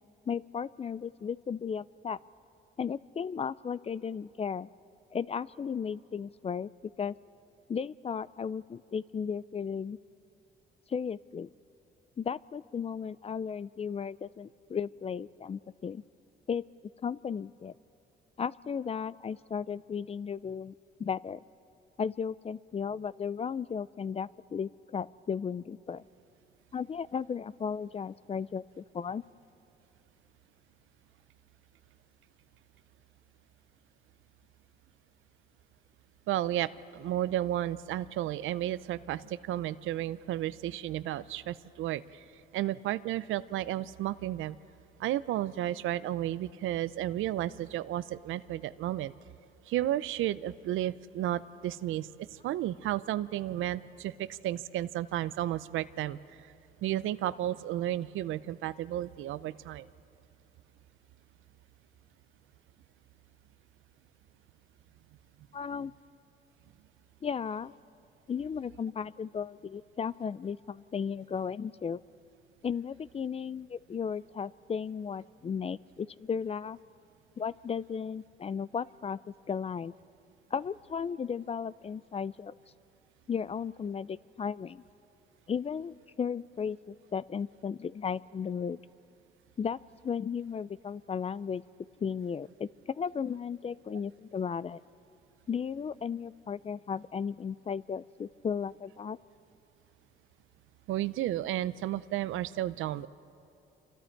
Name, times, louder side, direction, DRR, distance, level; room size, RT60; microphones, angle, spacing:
voice 1, 0.3-2.2 2.8-4.7 5.1-6.7 7.0-7.2 7.7-10.0 10.9-11.5 12.2-16.0 16.5-16.6 17.0-17.7 18.4-20.7 21.0-21.4 22.0-26.0 26.7-29.2 65.5-65.9 67.2-67.7 68.3-72.0 72.6-76.8 77.4-79.9 80.5-82.5 83.3-84.8 85.5-88.8 89.6-91.6 92.0-94.8 95.5-99.2, left 6 dB, 30° left, 19 dB, 0.4 m, -35 dB
voice 2, 36.3-42.2 42.5-44.6 45.0-49.1 49.7-56.2 56.8-59.9 100.9-103.1, right 13 dB, 85° right, 16 dB, 0.6 m, -33 dB
28.5 x 25.0 x 4.6 m, 2.7 s
cardioid pair, 90°, 20 cm